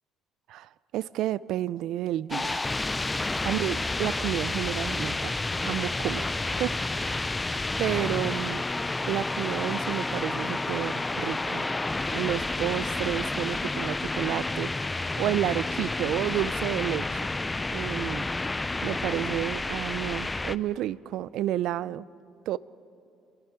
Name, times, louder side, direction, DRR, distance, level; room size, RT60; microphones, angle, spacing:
voice 1, 0.5-2.7 3.4-5.4 5.6-7.2 7.8-8.6 9.1-11.7 12.1-14.7 15.2-17.3 17.7-18.3 18.8-22.0 22.5-22.6, right 13 dB, 65° right, 0.4 m, -31 dB
sound 1, 2.3-20.6, left 2 dB, 10° left, 0.4 m, -30 dB
28.0 x 22.5 x 4.6 m
cardioid pair, 145°, 0 cm